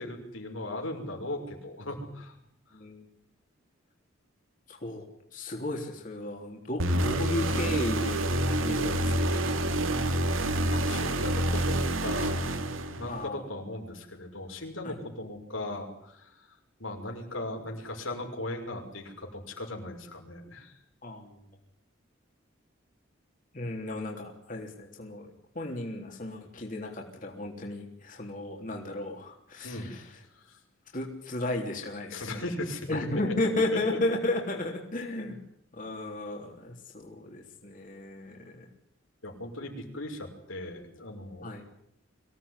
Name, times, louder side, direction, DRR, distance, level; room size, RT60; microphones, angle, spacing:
voice 1, 0.0-2.3 2.7-2.8 10.7-12.5 12.9-16.5 16.8-20.7 29.6-29.9 30.4-30.6 32.1-33.0 33.7-34.0 39.2-41.5, left 1 dB, 85° left, 2 dB, 6.1 m, -38 dB
voice 2, 2.7-3.1 4.7-5.1 5.3-8.3 8.6-9.6 13.1-13.5 14.8-15.0 21.0-21.4 23.5-25.3 25.6-30.2 30.9-32.4 32.9-35.4 35.7-38.7 41.4-41.6, left 2 dB, 40° left, 1 dB, 3.6 m, -34 dB
sound 1, 6.8-13.3, right 1 dB, 90° right, 2.5 m, -27 dB
25.0 x 17.0 x 9.9 m, 0.73 s
head